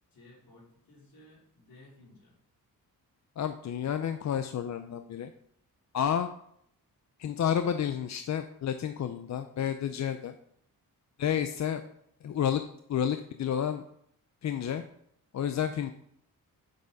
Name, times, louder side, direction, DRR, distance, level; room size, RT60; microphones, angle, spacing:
voice 1, 0.1-2.4, left 2 dB, 70° left, -4 dB, 3.8 m, -56 dB
voice 2, 3.4-5.3 5.9-6.3 7.2-10.3 11.2-11.8 12.2-12.6 12.9-13.8 14.4-14.8 15.3-15.9, left 9 dB, 50° left, 8 dB, 0.6 m, -30 dB
8.5 x 6.7 x 4.0 m, 0.69 s
cardioid pair, 115°, 36 cm